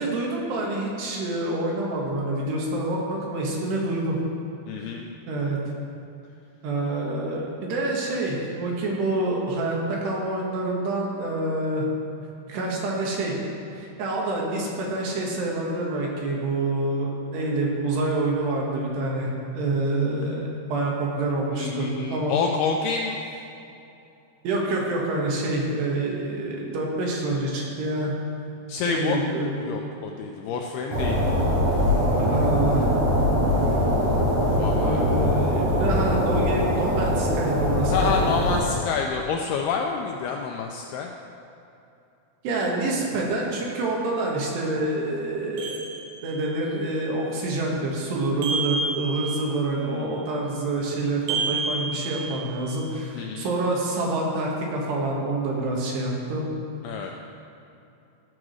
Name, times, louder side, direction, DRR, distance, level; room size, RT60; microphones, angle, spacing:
voice 1, 0.0-4.2 4.8-4.9 5.3-5.6 6.6-11.9 12.5-13.4 13.7-22.3 24.4-28.1 28.9-29.5 32.3-32.9 34.7-38.1 42.4-45.7 46.2-56.5 57.0-57.1, right 2 dB, 75° right, -2 dB, 3.5 m, -27 dB
voice 2, 4.7-5.1 21.6-23.4 28.7-29.2 29.6-31.4 34.6-35.0 37.9-41.1 49.7-50.3 53.1-53.5 56.8-57.1, left 5 dB, 85° left, 1 dB, 2.3 m, -28 dB
sound 1, 30.9-38.6, equal, 50° right, 3.1 m, -22 dB
sound 2, 45.6-46.6 48.4-49.7 51.3-52.8, right 3 dB, 90° right, 3.9 m, -30 dB
14.5 x 4.8 x 6.3 m, 2.8 s
omnidirectional pair, 5.1 m